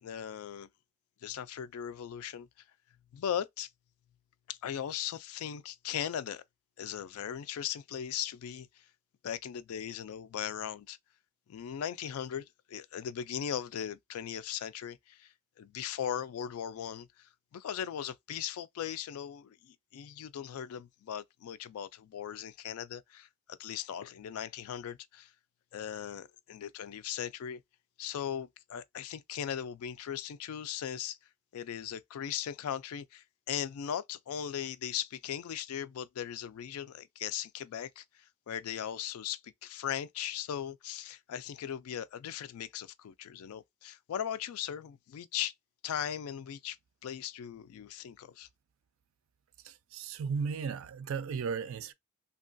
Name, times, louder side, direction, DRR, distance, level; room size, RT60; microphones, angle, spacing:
voice 1, 0.0-0.7 1.2-2.5 3.1-3.7 4.5-6.4 6.8-8.7 9.2-11.0 11.5-25.3 25.7-27.6 28.0-31.2 31.5-38.0 38.5-45.5 45.8-46.8 47.0-48.5, left 9 dB, 80° left, 0.3 m, -38 dB
voice 2, 49.6-51.9, right 5 dB, 65° right, 0.3 m, -35 dB
2.9 x 2.3 x 2.5 m
head